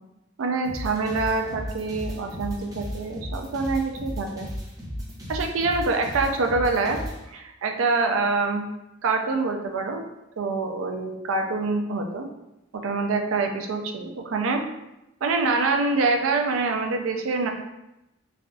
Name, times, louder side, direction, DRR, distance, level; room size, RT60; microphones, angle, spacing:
voice 1, 0.4-4.5 5.3-7.0 7.3-8.7 9.0-10.0 10.4-12.3 12.7-14.6 15.2-17.5, right 3 dB, 90° right, 4 dB, 0.4 m, -25 dB
sound 1, 0.6-7.2, equal, 20° right, 0.5 m, -35 dB
3.3 x 2.3 x 2.5 m, 0.92 s
head